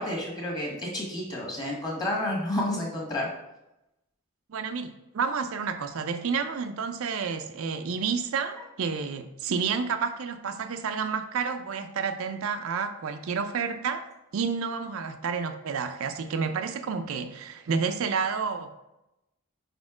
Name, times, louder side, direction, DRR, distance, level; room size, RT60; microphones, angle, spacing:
voice 1, 0.0-3.3, left 1 dB, 20° left, -2 dB, 1.4 m, -30 dB
voice 2, 4.5-14.1 14.3-18.7, right 5 dB, 65° right, 8 dB, 0.4 m, -30 dB
5.1 x 4.2 x 4.8 m, 0.93 s
head